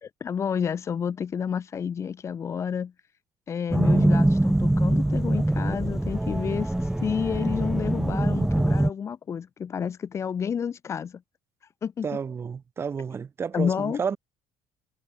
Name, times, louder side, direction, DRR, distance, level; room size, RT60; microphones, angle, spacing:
voice 1, 0.0-2.9 3.5-11.2 11.6-12.1 13.5-14.0, left 7 dB, 25° left, 2.1 m, -30 dB
sound 1, 3.7-8.9, right 1 dB, 5° right, 0.9 m, -23 dB
voice 2, 12.0-14.2, right 6 dB, 25° right, 2.4 m, -31 dB
cardioid pair, 160°, 10 cm